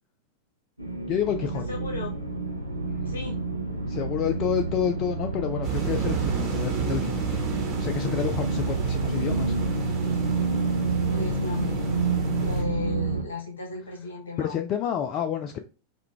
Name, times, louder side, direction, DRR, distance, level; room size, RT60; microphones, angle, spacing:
sound 1, 0.8-13.2, right 3 dB, 90° right, 0.6 m, -28 dB
voice 1, 1.0-1.6 2.9-3.3 3.9-7.4 7.8-9.5 14.4-15.6, left 9 dB, 35° left, 0.3 m, -29 dB
voice 2, 1.5-2.1 3.0-3.4 11.1-12.0 12.4-14.6, left 3 dB, 70° left, 1.0 m, -35 dB
sound 2, 5.6-12.6, right 9 dB, 35° right, 1.0 m, -33 dB
3.6 x 2.2 x 3.3 m
figure-of-eight pair, 90°, 0 cm